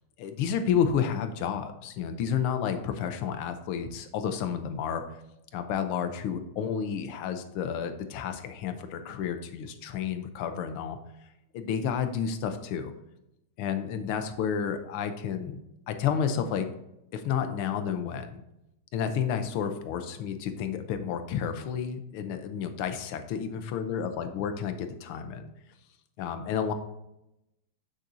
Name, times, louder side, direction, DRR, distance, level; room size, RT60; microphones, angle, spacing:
voice 1, 0.2-5.0 5.5-11.0 11.5-12.9 13.6-16.7 17.1-18.4 18.9-25.5 26.2-26.7, left 7 dB, 80° left, 8 dB, 1.6 m, -31 dB
7.4 x 6.5 x 2.7 m, 0.86 s
omnidirectional pair, 2.4 m